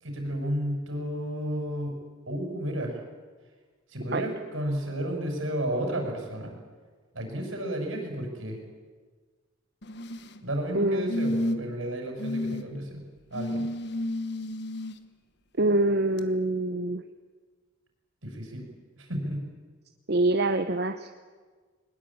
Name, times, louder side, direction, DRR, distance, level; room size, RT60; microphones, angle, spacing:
voice 1, 0.0-2.0 2.3-3.0 3.9-6.5 7.1-8.6 10.4-13.0 13.3-13.6 18.2-18.6 19.0-19.4, right 1 dB, 80° right, 3 dB, 6.4 m, -32 dB
sound 1, 9.8-10.4 11.1-11.8 12.2-12.6 13.3-14.9 16.2-16.3, left 1 dB, 55° left, 1.3 m, -31 dB
voice 2, 10.7-11.2 15.6-17.0 20.1-21.1, right 2 dB, 55° right, 8 dB, 0.9 m, -25 dB
21.5 x 20.5 x 8.7 m, 1.4 s
head